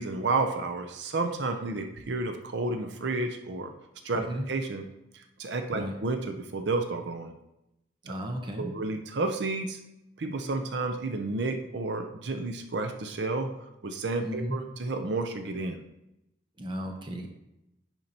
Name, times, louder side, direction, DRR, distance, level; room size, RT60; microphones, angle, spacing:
voice 1, 0.0-3.7 4.0-4.8 5.1-7.3 8.0-8.2 8.6-9.8 10.2-13.5 13.8-15.8, right 3 dB, 70° right, 5 dB, 0.6 m, -31 dB
voice 2, 8.0-8.7 14.2-14.6 16.6-17.3, equal, 25° right, 3 dB, 0.8 m, -34 dB
10.5 x 4.5 x 2.9 m, 0.88 s
head